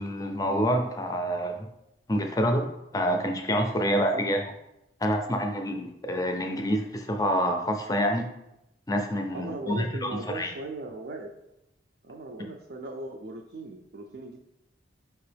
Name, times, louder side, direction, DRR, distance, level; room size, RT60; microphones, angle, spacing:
voice 1, 0.0-1.5 2.1-2.7 2.9-4.4 5.0-8.3 8.9-10.5, equal, 20° left, 4 dB, 0.5 m, -27 dB
voice 2, 3.8-4.3 9.3-11.3 12.0-14.4, right 2 dB, 60° right, 0 dB, 0.4 m, -38 dB
5.4 x 2.9 x 3.3 m, 0.86 s
head